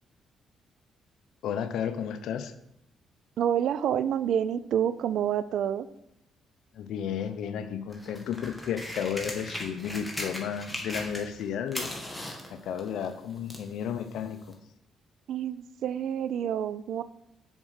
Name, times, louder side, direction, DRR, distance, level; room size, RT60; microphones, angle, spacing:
voice 1, 1.4-2.5 6.7-11.9 12.5-14.5, left 8 dB, 80° left, 9 dB, 0.6 m, -33 dB
voice 2, 3.4-5.9 15.3-17.0, right 9 dB, 75° right, 15 dB, 0.4 m, -28 dB
sound 1, 7.9-11.4 11.7-13.7 14.5-14.6, left 1 dB, 5° left, 1.9 m, -38 dB
7.2 x 5.1 x 6.4 m, 0.81 s
cardioid pair, 90°, 0 cm